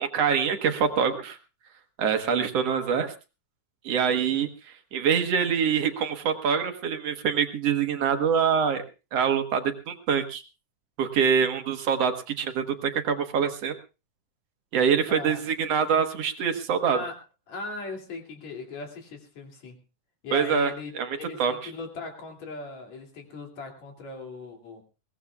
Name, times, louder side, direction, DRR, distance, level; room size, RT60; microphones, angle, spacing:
voice 1, 0.0-1.4 2.0-3.1 3.8-8.8 9.1-10.4 11.0-13.8 14.7-17.0 20.3-20.7 21.0-21.1 21.4-21.5, right 7 dB, 60° right, 7 dB, 2.2 m, -25 dB
voice 2, 15.1-15.4 16.9-17.2 17.5-19.8 20.2-24.8, left 4 dB, 60° left, 2 dB, 3.9 m, -39 dB
22.0 x 18.5 x 2.4 m, 0.30 s
omnidirectional pair, 3.6 m